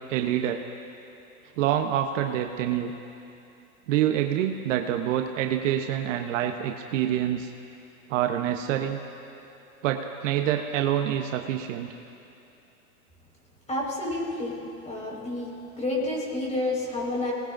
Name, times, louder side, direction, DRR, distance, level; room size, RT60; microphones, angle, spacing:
voice 1, 0.1-0.6 1.6-2.9 3.9-7.5 8.1-9.0 9.8-11.9, right 11 dB, 55° right, 4 dB, 1.0 m, -26 dB
voice 2, 13.7-14.5 14.8-15.5 15.8-17.3, left 2 dB, 15° left, -4 dB, 5.0 m, -29 dB
28.5 x 19.0 x 2.6 m, 2.8 s
hypercardioid pair, 125°, 45 cm